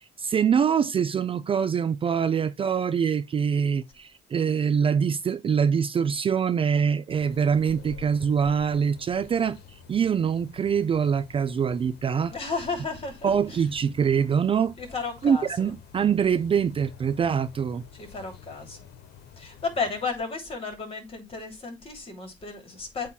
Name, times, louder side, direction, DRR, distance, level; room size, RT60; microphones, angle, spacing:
voice 1, 0.2-9.6 9.9-12.3 13.2-14.7 15.2-17.8, right 7 dB, 30° right, 0.5 m, -24 dB
sound 1, 7.1-20.1, left 7 dB, 75° left, 1.1 m, -49 dB
voice 2, 12.3-13.6 14.8-15.7 18.0-18.8 19.4-23.1, left 4 dB, 35° left, 3.2 m, -33 dB
8.2 x 3.0 x 5.7 m
cardioid pair, 110°, 17 cm